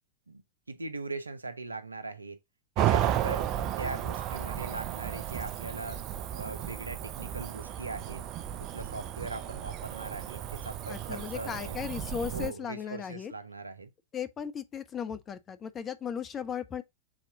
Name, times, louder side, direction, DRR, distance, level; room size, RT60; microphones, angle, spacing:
voice 1, 0.7-2.4 2.8-6.0 6.3-8.2 8.6-11.8 12.3-13.9, right 3 dB, 80° right, 0.9 m, -40 dB
Cricket / Motor vehicle (road), 2.8-12.5, right 10 dB, 40° right, 0.7 m, -33 dB
voice 2, 10.9-13.3 14.1-16.8, left 8 dB, 25° left, 1.2 m, -36 dB
7.5 x 4.3 x 3.7 m
figure-of-eight pair, 90°, 0 cm